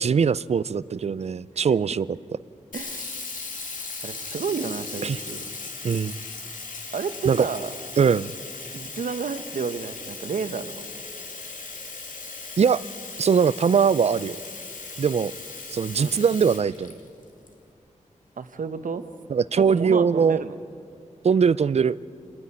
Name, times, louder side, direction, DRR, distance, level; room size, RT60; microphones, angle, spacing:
voice 1, 0.0-2.1 5.0-5.2 5.8-6.2 7.3-7.4 8.0-8.3 12.6-12.8 13.2-14.4 15.0-15.3 15.7-16.9 19.3-20.4 21.2-22.0, right 6 dB, 55° right, 18 dB, 0.4 m, -21 dB
Sink (filling or washing), 2.7-17.5, left 4 dB, 80° left, 2.2 m, -38 dB
voice 2, 2.7-3.0 4.0-5.4 6.9-7.7 8.7-10.9 16.0-16.2 18.4-19.0 19.5-20.6, right 5 dB, 85° right, 10 dB, 1.0 m, -31 dB
27.5 x 9.9 x 9.7 m, 2.4 s
wide cardioid pair, 120°, 13 cm